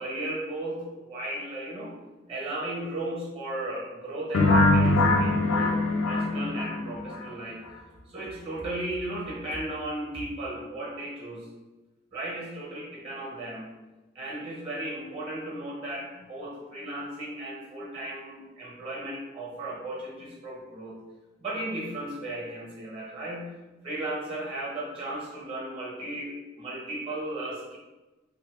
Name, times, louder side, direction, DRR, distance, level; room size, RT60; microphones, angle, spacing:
voice 1, 0.0-1.9 2.3-5.7 6.0-7.6 8.1-11.5 12.1-13.7 14.1-21.0 21.4-23.6 23.8-27.8, right 1 dB, 30° right, -3 dB, 0.9 m, -35 dB
sound 1, 4.3-7.2, left 2 dB, 85° left, 0.5 m, -22 dB
2.7 x 2.7 x 3.5 m, 1.1 s
head